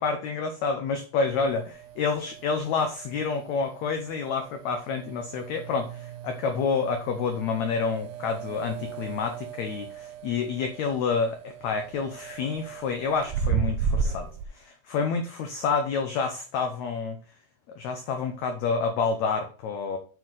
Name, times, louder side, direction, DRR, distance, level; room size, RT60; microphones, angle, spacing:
voice 1, 0.0-14.3 14.5-17.2 17.7-20.0, left 5 dB, 75° left, 6 dB, 1.6 m, -28 dB
sound 1, 1.2-14.5, right 6 dB, 80° right, 1.6 m, -35 dB
8.0 x 4.7 x 3.9 m, 0.38 s
omnidirectional pair, 4.2 m